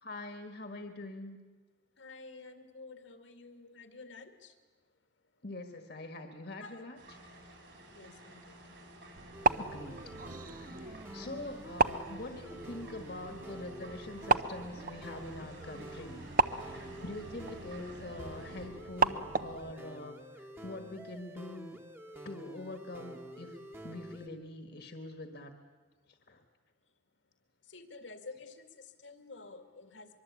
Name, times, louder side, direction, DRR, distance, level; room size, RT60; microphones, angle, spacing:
voice 1, 0.0-1.4 5.4-7.2 9.5-10.0 10.4-16.3 16.5-21.8 22.2-23.6 23.8-25.5 26.1-26.4, left 2 dB, 55° left, 5 dB, 1.6 m, -44 dB
voice 2, 2.0-4.6 6.6-6.9 7.9-8.6 26.8-26.9 27.6-30.2, left 3 dB, 85° left, 6 dB, 2.4 m, -50 dB
sound 1, 7.0-18.7, right 1 dB, 70° right, 7.3 m, -52 dB
sound 2, 9.2-19.7, right 4 dB, 45° right, 0.7 m, -35 dB
sound 3, 9.3-24.3, right 1 dB, 10° right, 1.2 m, -49 dB
23.5 x 23.0 x 8.4 m, 1.4 s
head